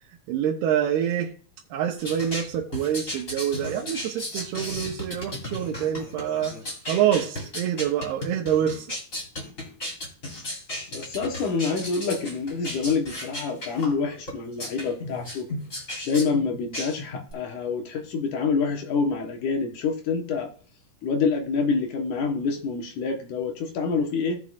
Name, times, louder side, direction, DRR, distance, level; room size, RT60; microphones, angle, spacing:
voice 1, 0.3-1.3 1.7-6.6 6.9-8.9, right 9 dB, 90° right, 3.0 m, -26 dB
sound 1, 2.0-17.3, left 1 dB, 20° left, 3.3 m, -35 dB
voice 2, 10.9-15.5 16.0-20.5 21.0-24.4, left 5 dB, 65° left, 2.5 m, -27 dB
16.5 x 6.8 x 2.5 m
omnidirectional pair, 4.4 m